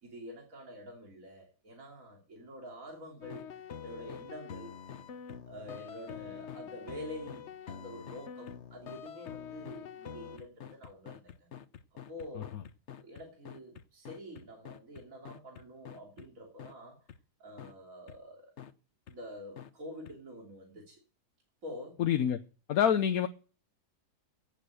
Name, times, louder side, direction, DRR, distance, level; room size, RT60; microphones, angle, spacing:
voice 1, 0.0-4.7 5.5-11.5 12.1-12.6 13.0-17.1 17.4-18.5 19.1-21.0 21.6-22.0, left 1 dB, 55° right, 3.4 m, -47 dB
sound 1, 3.2-16.3 16.6-16.7 17.1-17.2 17.6-17.7 18.1-18.2 18.6-18.7 19.1-19.2 19.6-19.7 20.1-20.2, left 8 dB, 50° left, 1.1 m, -46 dB
voice 2, 22.0-22.4 22.7-23.3, left 9 dB, 70° left, 1.3 m, -26 dB
17.0 x 7.4 x 6.4 m
omnidirectional pair, 1.7 m